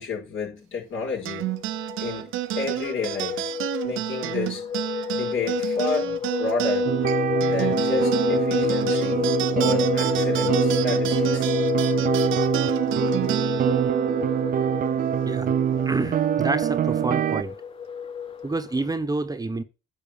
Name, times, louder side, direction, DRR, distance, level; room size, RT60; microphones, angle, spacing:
voice 1, 0.0-1.4 2.0-2.3 2.6-3.5 3.8-4.6 5.0-6.9 7.5-11.5, left 4 dB, 75° left, 5.1 m, -31 dB
sound 1, 1.1-18.9, left 7 dB, 30° left, 0.5 m, -29 dB
sound 2, 1.2-16.0, right 14 dB, 85° right, 0.7 m, -31 dB
sound 3, 6.8-17.4, right 9 dB, 45° right, 0.5 m, -24 dB
voice 2, 15.9-17.6 18.4-19.6, right 2 dB, 20° right, 0.9 m, -28 dB
9.9 x 4.5 x 7.1 m
cardioid pair, 90°, 20 cm